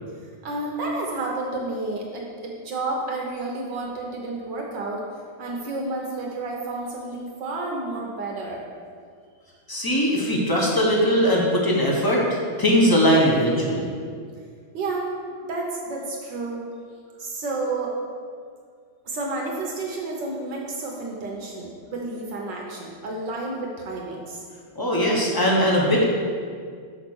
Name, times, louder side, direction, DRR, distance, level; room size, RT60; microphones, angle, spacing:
voice 1, 0.4-5.1 5.4-8.6 14.7-15.1 15.5-16.7 17.2-18.0 19.0-24.4, right 2 dB, 60° right, -1 dB, 1.5 m, -30 dB
voice 2, 9.7-13.9 24.7-26.0, equal, 15° left, -3 dB, 0.8 m, -20 dB
5.9 x 5.7 x 6.2 m, 2.1 s
omnidirectional pair, 2.3 m